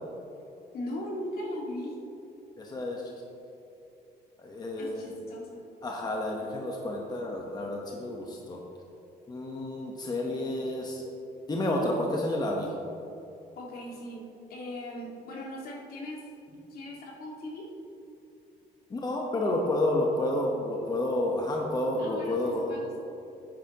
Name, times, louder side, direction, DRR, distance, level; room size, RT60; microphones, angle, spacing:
voice 1, 0.7-1.9 4.8-5.6 13.6-14.2 14.5-16.3 16.7-17.7 20.5-20.7 22.0-23.0, left 1 dB, 60° left, -2 dB, 2.1 m, -39 dB
voice 2, 2.6-3.0 4.4-5.1 5.8-8.6 9.3-11.0 11.5-12.7 18.9-22.6, left 1 dB, 25° left, -1 dB, 1.1 m, -30 dB
10.0 x 9.2 x 3.0 m, 2.7 s
cardioid pair, 110°, 17 cm